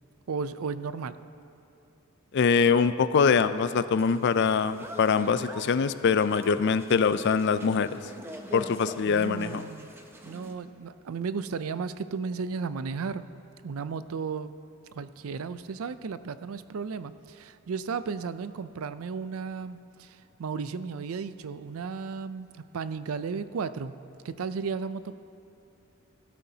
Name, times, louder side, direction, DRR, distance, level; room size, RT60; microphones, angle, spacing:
voice 1, 0.3-1.2 9.0-9.9 10.2-13.2 13.6-14.5 14.9-25.1, right 5 dB, 80° right, 13 dB, 0.4 m, -34 dB
voice 2, 2.3-8.0 8.5-9.6, left 5 dB, 55° left, 13 dB, 0.4 m, -23 dB
sound 1, 4.0-10.5, right 1 dB, 10° right, 0.7 m, -44 dB
17.5 x 12.5 x 2.8 m, 2.6 s
head